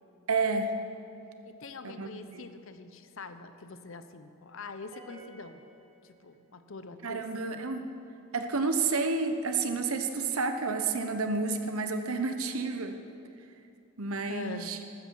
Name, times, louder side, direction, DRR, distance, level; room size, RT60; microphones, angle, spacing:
voice 1, 0.3-0.7 1.8-2.4 7.0-7.9 8.3-13.0 14.0-14.8, right 4 dB, 80° right, 7 dB, 1.0 m, -30 dB
voice 2, 1.4-5.6 6.0-7.2 14.3-14.7, left 3 dB, 60° left, 10 dB, 0.7 m, -44 dB
sound 1, 4.9-6.6, right 2 dB, 30° right, 1.4 m, -53 dB
14.0 x 13.0 x 4.7 m, 2.6 s
head